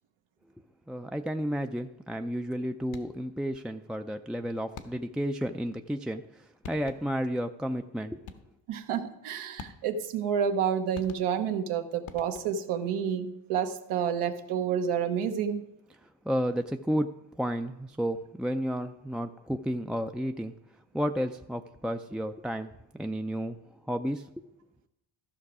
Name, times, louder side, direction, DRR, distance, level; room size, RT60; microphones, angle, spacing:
voice 1, 0.9-8.3 16.0-20.5 20.9-23.6 23.9-24.3, equal, ahead, 5 dB, 0.3 m, -32 dB
sound 1, 2.8-3.3 4.7-5.3 6.3-6.4 6.6-7.3 8.3-8.7 9.6-10.1 10.9-11.6 12.1-12.7, left 6 dB, 70° left, 1.1 m, -47 dB
voice 2, 8.7-15.6, right 8 dB, 80° right, 7 dB, 1.1 m, -29 dB
13.5 x 5.9 x 4.8 m, 0.87 s
supercardioid pair, 65°, 49 cm